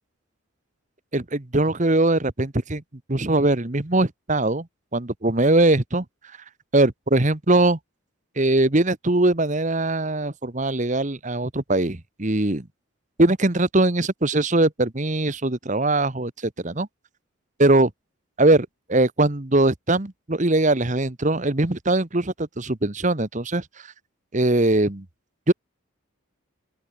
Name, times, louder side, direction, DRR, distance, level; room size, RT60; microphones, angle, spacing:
voice 1, 1.1-2.8 3.1-4.7 4.9-6.0 6.7-7.8 8.4-12.7 13.2-16.3 16.6-16.9 17.6-17.9 18.4-23.6 24.3-25.0 25.5-25.6, right 2 dB, 35° right, 1.3 m, -21 dB
open air
head